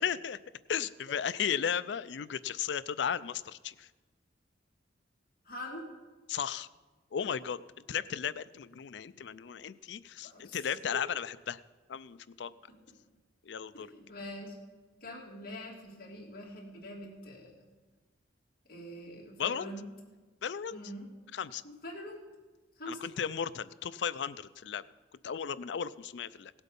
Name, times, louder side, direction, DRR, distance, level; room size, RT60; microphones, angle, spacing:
voice 1, 0.0-0.4 0.7-3.9 6.3-6.7 7.1-7.6 7.9-11.6 11.9-12.5 13.5-13.9 19.4-19.7 20.4-20.8 21.3-21.6 22.9-24.8 25.2-26.5, left 8 dB, 70° left, 16 dB, 0.4 m, -35 dB
voice 2, 5.4-5.9 10.2-11.1 13.7-14.6 15.0-17.5 18.7-19.9 20.7-21.1 21.8-22.2 22.8-23.1, left 1 dB, 50° left, -3 dB, 2.9 m, -44 dB
17.5 x 8.1 x 5.3 m, 1.3 s
head